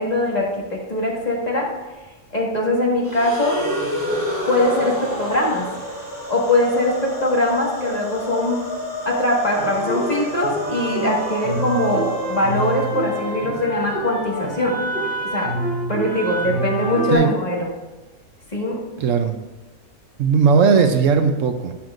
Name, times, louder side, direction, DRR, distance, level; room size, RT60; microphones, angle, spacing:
voice 1, 0.0-1.7 2.3-3.6 4.5-5.7 6.3-8.6 9.1-14.8 15.2-15.5 15.9-17.7 18.5-18.8, left 1 dB, 30° left, -3 dB, 1.8 m, -21 dB
sound 1, 3.0-13.2, equal, 15° right, 2.4 m, -29 dB
sound 2, 9.5-17.1, right 1 dB, 50° right, 3.3 m, -27 dB
voice 2, 19.0-19.4 20.2-21.7, right 6 dB, 70° right, 7 dB, 1.0 m, -17 dB
11.5 x 9.0 x 2.5 m, 1.1 s
omnidirectional pair, 1.4 m